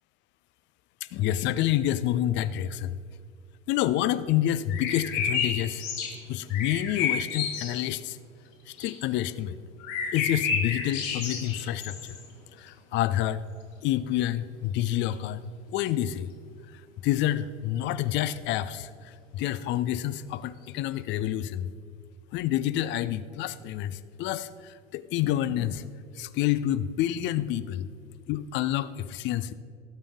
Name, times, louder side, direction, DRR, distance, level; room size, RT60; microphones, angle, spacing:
voice 1, 1.1-3.0 3.7-5.8 6.3-8.2 8.7-9.6 10.1-12.2 12.6-13.4 13.8-15.4 15.7-16.3 17.0-21.7 22.3-27.9 28.3-29.5, left 12 dB, 30° left, 16 dB, 0.5 m, -28 dB
sound 1, 4.7-6.2 6.5-7.8 8.7-9.0 9.8-12.3 12.7-12.8 14.9-15.1 17.8-18.0, left 6 dB, 50° left, 1.8 m, -31 dB
18.0 x 7.4 x 3.6 m, 2.3 s
figure-of-eight pair, 75°, 37 cm